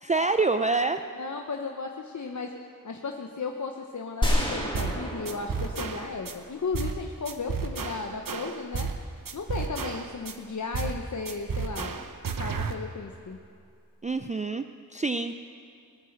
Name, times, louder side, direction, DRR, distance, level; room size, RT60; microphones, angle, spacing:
voice 1, 0.0-1.0 14.0-14.6 14.9-15.3, right 3 dB, 20° right, 8 dB, 0.4 m, -26 dB
voice 2, 1.1-2.5 2.8-8.9 9.3-11.9 12.4-13.4, left 4 dB, 60° left, 3 dB, 0.9 m, -35 dB
sound 1, 4.2-7.1, equal, 15° left, 3.1 m, -30 dB
sound 2, 4.7-5.0 5.2-6.3 6.7-7.0 7.2-9.0 9.2-10.3 10.7-11.0 11.2-12.7, right 5 dB, 75° right, 1.0 m, -32 dB
21.0 x 9.8 x 6.6 m, 2.4 s
wide cardioid pair, 95°, 33 cm